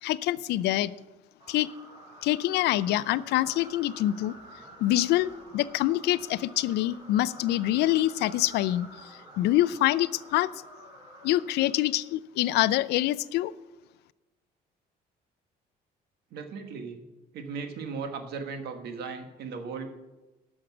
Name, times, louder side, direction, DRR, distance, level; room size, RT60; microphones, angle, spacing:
voice 1, 0.0-0.9 1.5-1.7 2.2-4.3 4.8-10.5 11.2-13.5, left 15 dB, 80° left, 18 dB, 0.4 m, -25 dB
sound 1, 1.4-12.1, right 1 dB, 30° right, 3.1 m, -49 dB
voice 2, 16.3-17.0 17.3-19.9, right 5 dB, 70° right, 6 dB, 1.4 m, -37 dB
11.5 x 6.4 x 6.0 m, 1.1 s
cardioid pair, 110°, 17 cm